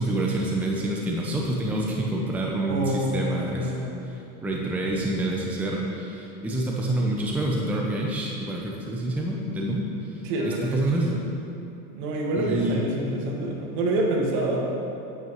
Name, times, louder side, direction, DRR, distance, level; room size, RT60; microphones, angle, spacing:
voice 1, 0.0-3.7 4.0-11.2 12.4-12.8, right 1 dB, 5° right, -2 dB, 0.7 m, -27 dB
voice 2, 2.7-3.2 3.5-3.9 10.2-10.8 11.9-14.6, right 1 dB, 60° right, -1 dB, 1.9 m, -26 dB
9.1 x 8.4 x 3.1 m, 2.8 s
supercardioid pair, 125°, 43 cm